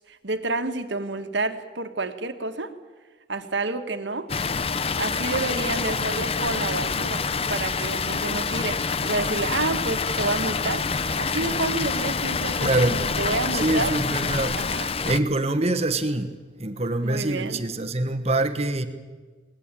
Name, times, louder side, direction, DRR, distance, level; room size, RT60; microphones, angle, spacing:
voice 1, 0.0-2.7 3.3-4.3 5.0-10.9 11.1-13.9 14.6-14.9 17.0-17.6, right 3 dB, 65° right, 1.6 m, -29 dB
Water, 4.3-15.2, left 5 dB, 30° left, 0.7 m, -27 dB
voice 2, 12.6-13.0 13.5-14.6 15.0-16.3 16.6-18.9, right 2 dB, 30° right, 1.3 m, -24 dB
21.5 x 19.0 x 9.1 m
head